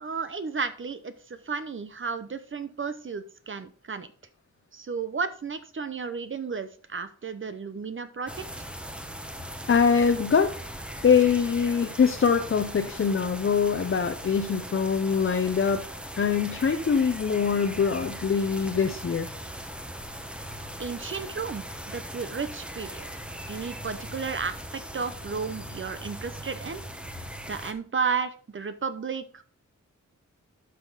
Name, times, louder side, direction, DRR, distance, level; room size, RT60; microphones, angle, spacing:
voice 1, 0.0-4.1 4.7-8.4 20.8-23.1 23.5-26.8 27.5-29.4, right 5 dB, 40° right, 11 dB, 0.8 m, -33 dB
sound 1, 8.3-27.7, equal, 5° right, 1.0 m, -39 dB
voice 2, 9.7-10.5 11.0-15.8 16.2-19.3, left 6 dB, 45° left, 6 dB, 0.8 m, -23 dB
12.0 x 6.0 x 4.0 m, 0.41 s
wide cardioid pair, 120°, 30 cm